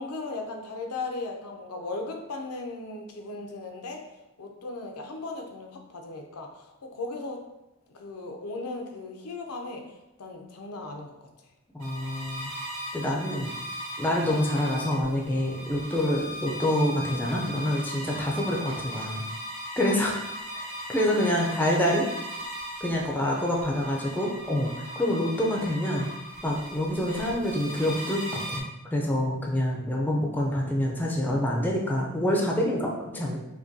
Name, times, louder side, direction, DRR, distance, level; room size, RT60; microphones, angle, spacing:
voice 1, 0.0-4.0 4.4-7.4 7.9-9.8 10.2-11.1 23.1-23.5, left 3 dB, 90° left, 3 dB, 0.6 m, -37 dB
voice 2, 11.7-12.5 12.9-13.5 14.0-19.2 19.8-20.1 20.5-22.1 22.8-26.1 26.4-28.6 28.9-33.4, left 1 dB, 10° left, -2 dB, 0.4 m, -27 dB
sound 1, 11.8-28.6, equal, 65° right, 0.8 m, -38 dB
5.0 x 2.2 x 2.6 m, 0.93 s
head